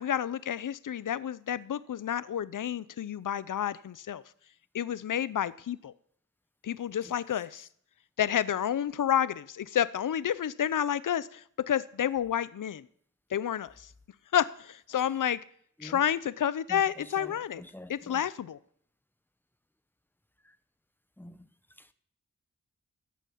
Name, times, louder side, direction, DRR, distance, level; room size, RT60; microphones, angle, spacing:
voice 1, 0.0-4.2 4.7-5.9 6.6-7.7 8.2-12.9 13.3-13.9 14.3-15.4 15.8-17.6 17.9-18.6, left 9 dB, 75° left, 0.6 m, -30 dB
voice 2, 15.8-16.1 16.7-18.3 20.4-20.6 21.2-21.5 21.8-21.9, left 1 dB, 5° left, 1.1 m, -49 dB
14.0 x 9.2 x 8.5 m
wide cardioid pair, 75°, 32 cm